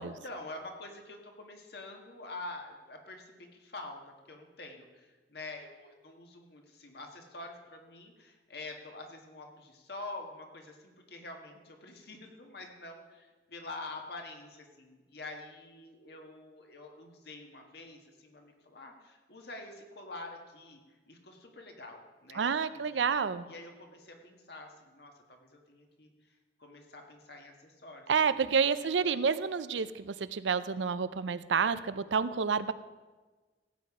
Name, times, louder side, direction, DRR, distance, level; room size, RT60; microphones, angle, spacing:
voice 1, 0.0-20.8 21.1-23.1 23.5-28.4 29.1-29.3, left 2 dB, 60° left, 3 dB, 1.7 m, -47 dB
voice 2, 22.4-23.5 28.1-32.7, right 6 dB, 85° right, 14 dB, 0.5 m, -29 dB
15.5 x 8.5 x 4.9 m, 1.3 s
head